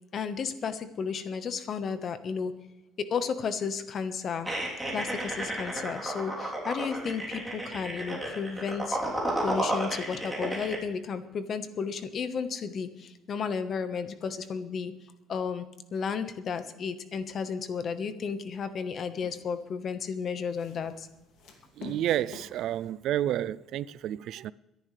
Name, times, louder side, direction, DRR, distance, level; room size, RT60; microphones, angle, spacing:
voice 1, 0.1-2.5 3.0-4.5 4.9-9.0 9.4-14.9 15.3-15.7 15.9-21.1, left 6 dB, 45° left, 1.2 m, -33 dB
sound 1, 4.5-10.8, right 1 dB, ahead, 3.3 m, -32 dB
sound 2, 17.4-17.9 18.5-19.7 20.3-22.9, left 5 dB, 70° left, 2.5 m, -49 dB
voice 2, 21.8-24.5, right 12 dB, 65° right, 0.3 m, -30 dB
23.5 x 11.0 x 3.3 m
cardioid pair, 130°, 0 cm